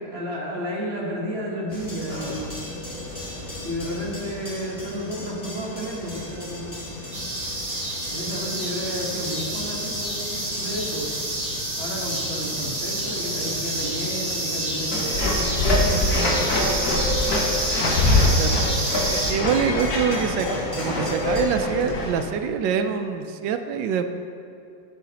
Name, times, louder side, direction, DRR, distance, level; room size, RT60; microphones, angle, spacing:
voice 1, 0.1-2.7 3.6-6.9 8.1-11.1 11.7-16.6, equal, 40° right, -3 dB, 1.3 m, -32 dB
sound 1, 1.7-21.4, left 1 dB, 20° left, 1.4 m, -35 dB
sound 2, 7.1-19.3, right 1 dB, 20° right, 1.1 m, -28 dB
sound 3, 14.9-22.2, left 2 dB, 65° left, 1.4 m, -24 dB
voice 2, 19.1-20.5 20.8-24.1, right 7 dB, 90° right, 8 dB, 1.2 m, -25 dB
13.5 x 5.1 x 2.8 m, 2.5 s
omnidirectional pair, 1.9 m